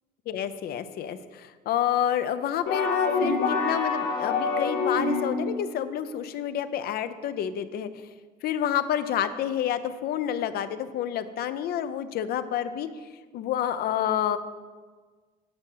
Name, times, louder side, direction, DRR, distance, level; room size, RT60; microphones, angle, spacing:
voice 1, 0.3-7.9 8.4-12.9 13.3-14.4, left 10 dB, 65° left, 11 dB, 0.5 m, -29 dB
sound 1, 2.7-5.5, left 4 dB, 85° left, 1.6 m, -26 dB
8.9 x 4.9 x 5.6 m, 1.4 s
cardioid pair, 110°, 17 cm